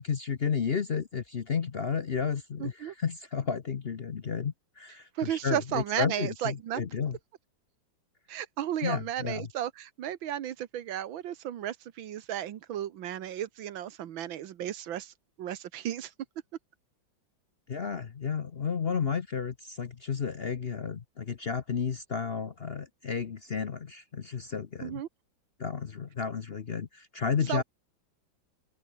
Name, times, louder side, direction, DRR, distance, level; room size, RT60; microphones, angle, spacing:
voice 1, 0.0-7.2 8.8-9.5 17.7-25.0 25.6-27.6, left 6 dB, 45° left, 0.8 m, -32 dB
voice 2, 2.6-2.9 5.2-6.8 8.3-15.1 15.4-16.1 24.8-25.1 27.5-27.6, right 11 dB, 90° right, 1.9 m, -34 dB
open air
omnidirectional pair, 2.1 m